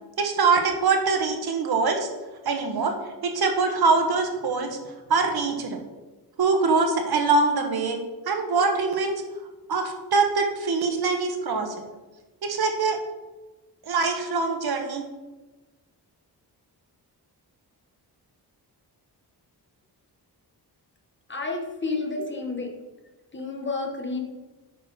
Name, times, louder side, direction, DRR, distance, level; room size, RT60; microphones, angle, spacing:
voice 1, 0.2-2.1 2.4-2.9 3.2-4.8 5.1-5.8 6.4-8.0 8.3-9.1 9.7-11.7 12.4-13.0 13.8-15.0, right 4 dB, 70° right, 4 dB, 1.3 m, -23 dB
voice 2, 21.3-22.7 23.3-24.2, left 3 dB, 30° left, 1 dB, 1.4 m, -30 dB
8.9 x 6.1 x 4.2 m, 1.2 s
wide cardioid pair, 150°, 40 cm